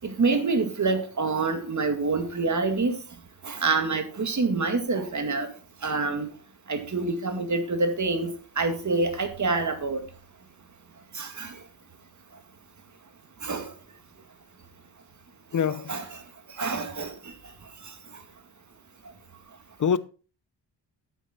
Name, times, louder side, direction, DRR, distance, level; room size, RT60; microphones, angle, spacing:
voice 1, 0.0-3.0 3.4-5.5 5.8-6.3 6.7-8.3 8.6-10.0 11.2-11.5 13.4-13.7 15.9-16.1 16.6-17.1, right 3 dB, 40° right, 2.0 m, -26 dB
voice 2, 15.5-16.0 19.8-20.0, left 7 dB, 45° left, 0.7 m, -24 dB
11.0 x 9.0 x 4.2 m
wide cardioid pair, 100°, 45 cm